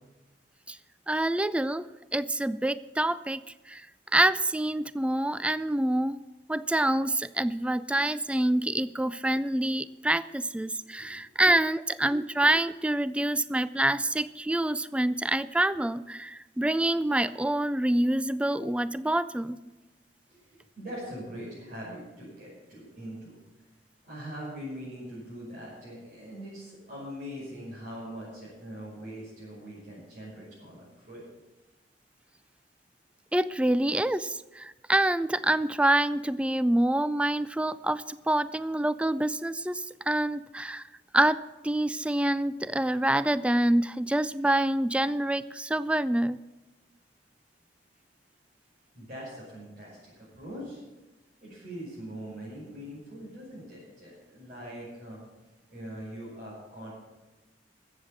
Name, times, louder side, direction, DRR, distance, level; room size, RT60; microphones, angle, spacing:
voice 1, 1.1-3.4 3.7-3.9 4.1-6.2 6.5-19.6 33.3-40.9 41.1-41.4 41.6-46.4, right 1 dB, 5° right, 15 dB, 0.3 m, -26 dB
voice 2, 20.3-23.4 24.0-31.2 48.9-50.8 51.4-55.2 55.7-56.9, equal, 45° right, -9 dB, 6.0 m, -42 dB
14.0 x 8.1 x 7.3 m, 1.1 s
head